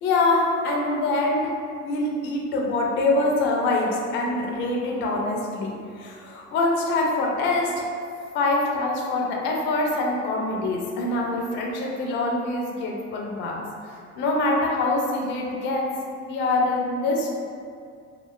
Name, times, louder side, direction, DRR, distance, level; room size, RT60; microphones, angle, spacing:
voice 1, 0.0-1.5 1.8-7.9 8.3-13.6 14.2-15.9 16.3-17.3, left 2 dB, 30° left, -1 dB, 0.4 m, -24 dB
2.6 x 2.1 x 2.3 m, 2.3 s
figure-of-eight pair, 60°, 38 cm